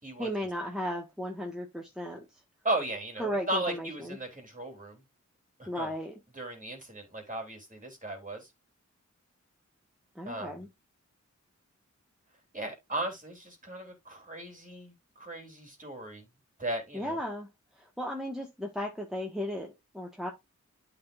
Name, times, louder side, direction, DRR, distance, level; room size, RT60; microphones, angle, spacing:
voice 1, 0.2-2.2 3.2-4.2 5.7-6.2 10.1-10.7 16.9-17.5 17.8-20.3, equal, ahead, 1.6 m, -35 dB
voice 2, 2.6-5.0 5.6-5.9 6.3-8.5 10.2-10.6 12.5-16.2 16.6-17.2, right 1 dB, 25° right, 3.3 m, -36 dB
12.0 x 4.0 x 2.6 m
wide cardioid pair, 90°, 29 cm